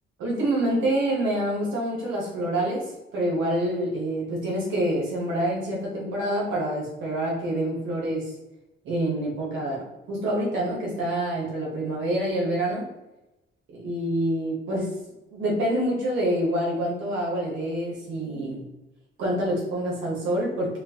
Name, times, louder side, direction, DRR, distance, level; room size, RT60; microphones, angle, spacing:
voice 1, 0.2-8.3 8.8-12.9 13.7-15.0 15.3-18.6 19.2-20.8, right 1 dB, 80° right, -4 dB, 1.2 m, -27 dB
4.6 x 2.4 x 2.8 m, 0.97 s
cardioid pair, 90°, 20 cm